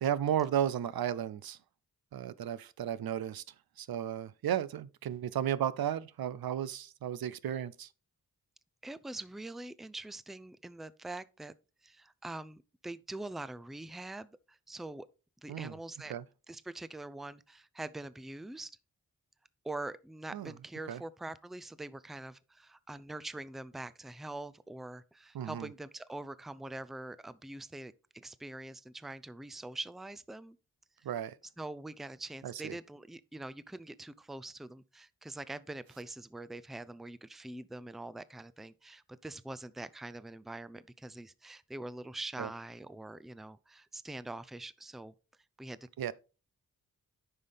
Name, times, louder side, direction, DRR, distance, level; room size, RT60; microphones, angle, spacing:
voice 1, 0.0-1.6 2.1-3.4 3.8-7.9 15.5-15.7 16.1-16.2 20.3-20.5 20.9-21.0 25.3-25.7 31.0-31.3 32.4-32.8 42.4-42.5 46.0-46.1, right 10 dB, 80° right, 0.6 m, -34 dB
voice 2, 8.8-11.5 11.8-15.1 15.4-16.1 16.5-18.8 19.6-30.6 31.0-31.1 31.6-45.1 45.6-45.8, right 2 dB, ahead, 0.4 m, -44 dB
9.5 x 5.6 x 3.4 m
cardioid pair, 65°, 36 cm